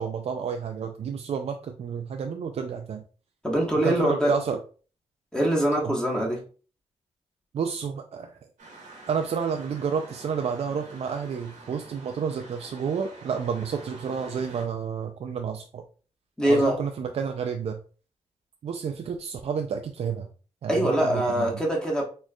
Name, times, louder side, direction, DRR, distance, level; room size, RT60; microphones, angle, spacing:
voice 1, 0.0-3.0 3.8-4.6 5.8-5.9 7.5-8.4 9.1-15.8 16.5-17.8 18.6-20.3 20.6-21.6, right 6 dB, 55° right, 5 dB, 0.4 m, -30 dB
voice 2, 3.4-4.3 5.3-6.4 16.4-16.8 20.7-22.0, right 1 dB, 5° left, -2 dB, 1.3 m, -23 dB
sound 1, 8.6-14.6, right 2 dB, 90° right, 1.5 m, -46 dB
4.2 x 3.1 x 2.3 m, 0.38 s
cardioid pair, 95°, 12 cm